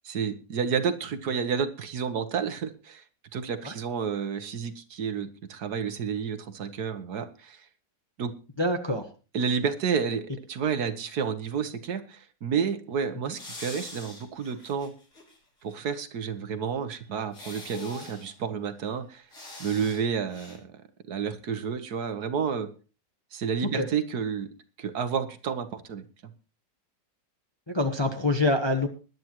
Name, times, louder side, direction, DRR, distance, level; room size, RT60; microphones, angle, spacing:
voice 1, 0.0-3.0 3.3-7.6 8.2-8.3 9.3-14.9 15.6-19.2 19.6-20.7 21.1-22.7 23.3-24.5 24.8-26.0, right 6 dB, 65° right, 10 dB, 1.6 m, -30 dB
voice 2, 8.6-9.1 23.8-23.9 27.7-28.9, left 2 dB, 20° left, 5 dB, 0.9 m, -25 dB
sound 1, 13.3-15.4 15.7-15.8 17.3-18.4 19.3-20.0 20.3-20.6, left 2 dB, 65° left, 4.1 m, -43 dB
20.5 x 11.0 x 3.0 m, 0.34 s
omnidirectional pair, 1.9 m